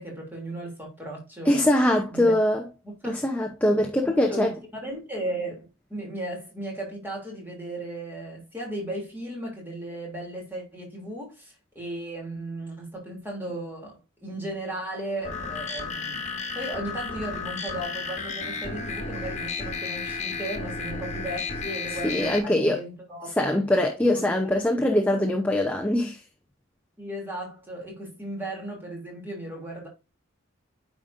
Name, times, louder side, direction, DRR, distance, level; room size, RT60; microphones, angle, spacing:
voice 1, 0.0-1.6 2.1-2.4 2.8-3.2 4.0-4.5 4.8-16.3 16.5-23.5 24.0-25.2 27.0-29.9, right 1 dB, 10° right, 2.9 m, -36 dB
voice 2, 1.5-2.6 3.0-4.5 22.0-22.8 23.4-26.2, left 1 dB, 5° left, 0.7 m, -22 dB
sound 1, 15.2-22.4, left 4 dB, 35° left, 1.7 m, -33 dB
9.3 x 5.1 x 2.6 m
head